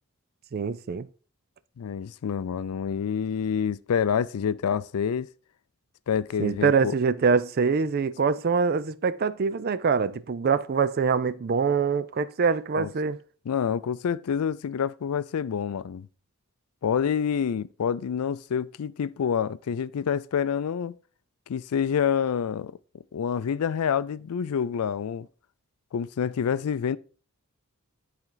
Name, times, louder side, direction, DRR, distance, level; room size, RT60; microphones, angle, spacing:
voice 1, 0.5-1.1 6.4-13.2, right 5 dB, 45° right, 0.4 m, -24 dB
voice 2, 1.8-5.3 6.1-6.9 12.8-12.9 13.5-16.1 16.8-20.9 21.5-22.8 23.1-25.3 25.9-27.0, left 7 dB, 85° left, 0.4 m, -27 dB
10.5 x 4.3 x 3.9 m
head